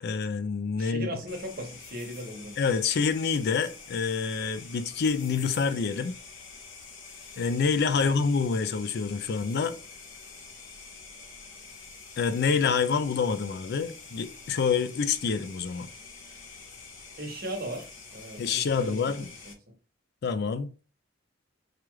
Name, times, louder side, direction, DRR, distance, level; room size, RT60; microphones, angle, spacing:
voice 1, 0.0-1.1 2.6-6.2 7.4-9.8 12.2-15.9 18.4-19.3 20.2-20.7, left 5 dB, 55° left, 0.4 m, -27 dB
voice 2, 0.8-2.6 8.0-8.1 17.2-19.3, equal, 50° right, 1.1 m, -38 dB
sound 1, 1.3-19.5, left 4 dB, 85° left, 0.9 m, -47 dB
4.8 x 2.4 x 3.1 m
head